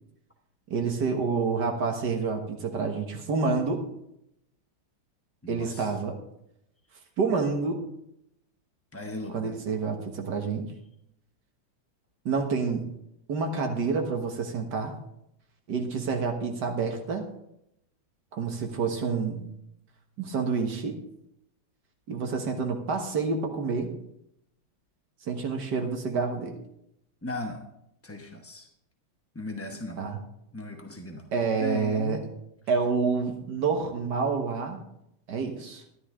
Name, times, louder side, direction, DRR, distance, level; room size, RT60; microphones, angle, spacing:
voice 1, 0.7-3.8 5.5-6.2 7.2-7.8 9.3-10.7 12.3-12.8 13.3-14.9 15.7-17.2 18.3-19.5 20.2-20.9 22.1-23.9 25.2-26.6 30.0-30.2 31.3-32.2 32.7-34.8 35.3-35.8, right 4 dB, 65° right, 4 dB, 1.9 m, -28 dB
voice 2, 5.4-5.9 8.9-9.5 27.2-27.6 28.0-28.7 29.3-30.0 30.5-31.2 31.6-32.3, left 2 dB, 20° left, 2 dB, 0.3 m, -37 dB
13.0 x 10.5 x 3.7 m, 0.79 s
omnidirectional pair, 2.1 m